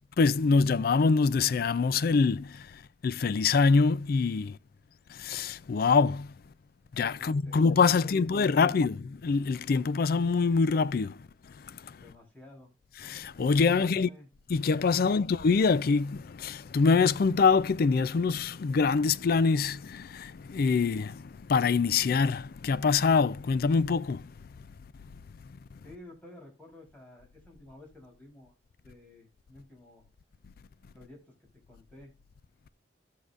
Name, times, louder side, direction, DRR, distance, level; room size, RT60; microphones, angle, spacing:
voice 1, 0.2-4.6 5.1-6.3 6.9-12.0 13.0-14.1 14.5-24.3 25.7-25.8, left 4 dB, 55° left, 0.4 m, -25 dB
voice 2, 7.2-7.6 8.0-8.9 12.0-12.7 13.8-14.3 25.8-28.5 28.8-30.0 30.9-32.1, left 1 dB, 10° left, 3.7 m, -52 dB
15.5 x 6.6 x 2.4 m
head